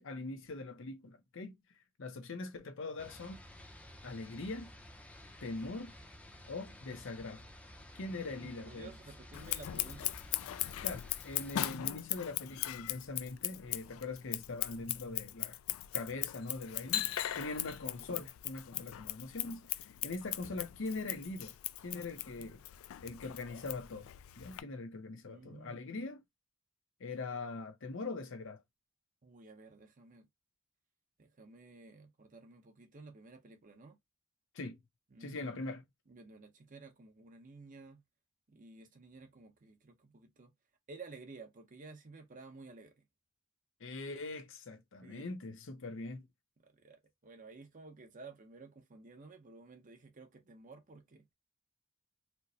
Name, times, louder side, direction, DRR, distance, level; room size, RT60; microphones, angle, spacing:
voice 1, 0.0-1.6 2.0-3.4 4.0-4.7 5.4-5.9 6.5-7.4 7.9-8.9 10.8-15.6 15.9-19.7 20.0-21.5 21.8-22.6 23.0-26.2 27.0-28.6 34.5-34.8 35.2-35.8 43.8-46.3, left 3 dB, 70° left, 0.8 m, -42 dB
sound 1, 3.0-11.7, left 1 dB, 5° left, 0.6 m, -53 dB
voice 2, 8.1-10.2 25.3-25.9 29.2-30.3 31.2-34.0 35.1-35.7 36.1-38.0 38.5-40.5 40.9-43.0 45.0-45.3 46.6-51.2, right 3 dB, 40° right, 0.7 m, -53 dB
Scissors, 9.3-24.6, left 14 dB, 85° left, 0.3 m, -39 dB
4.4 x 2.1 x 2.7 m
head